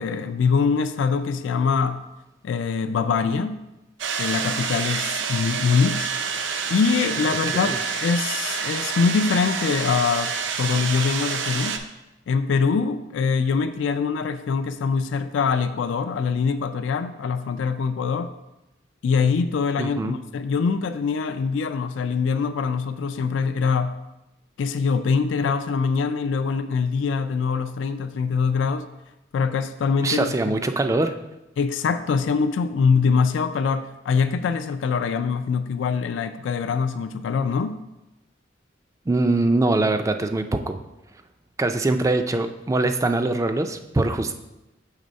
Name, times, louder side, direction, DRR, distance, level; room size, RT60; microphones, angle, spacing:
voice 1, 0.0-2.0 2.4-3.6 4.2-6.1 6.7-7.7 8.0-10.3 10.6-11.8 12.3-18.3 19.0-23.9 24.6-28.9 29.3-30.5 31.6-37.8, left 5 dB, 80° left, 0.3 m, -23 dB
sound 1, 4.0-11.8, right 6 dB, 75° right, 0.5 m, -28 dB
voice 2, 19.8-20.1 30.0-31.1 39.1-40.8 41.6-44.3, right 2 dB, 15° right, 0.3 m, -23 dB
6.5 x 3.4 x 5.2 m
head